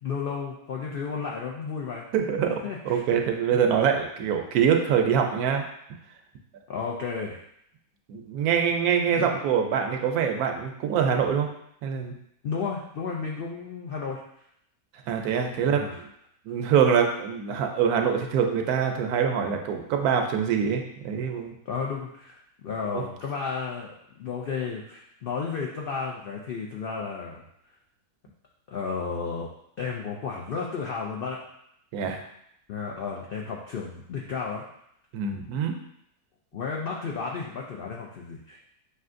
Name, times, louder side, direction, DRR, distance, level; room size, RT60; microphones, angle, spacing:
voice 1, 0.0-2.1 2.6-3.0 3.5-3.6 6.7-7.4 9.2-9.3 12.4-14.2 15.6-16.0 21.7-22.4 22.6-27.4 28.7-29.5 29.8-31.4 32.7-34.6 36.5-38.6, left 5 dB, 80° left, -2 dB, 0.5 m, -33 dB
voice 2, 2.1-5.6 8.1-11.5 11.8-12.1 15.1-16.1 16.4-21.5 22.9-23.0 31.9-32.2 35.1-35.8, right 7 dB, 80° right, 4 dB, 1.1 m, -24 dB
6.2 x 2.7 x 2.5 m, 0.74 s
omnidirectional pair, 1.6 m